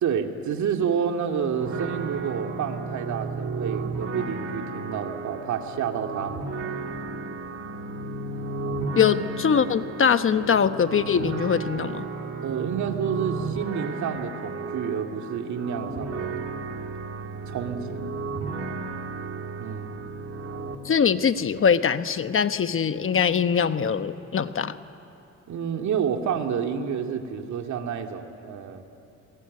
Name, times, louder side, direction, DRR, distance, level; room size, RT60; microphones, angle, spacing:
voice 1, 0.0-6.5 12.4-16.4 17.5-18.1 19.6-20.0 25.5-28.8, right 7 dB, 70° right, 4 dB, 2.3 m, -29 dB
sound 1, 1.6-20.7, right 4 dB, 50° right, 2.8 m, -33 dB
voice 2, 9.0-12.0 20.8-24.8, left 7 dB, 45° left, 11 dB, 1.1 m, -22 dB
29.0 x 21.5 x 9.6 m, 2.7 s
cardioid pair, 90°, 30 cm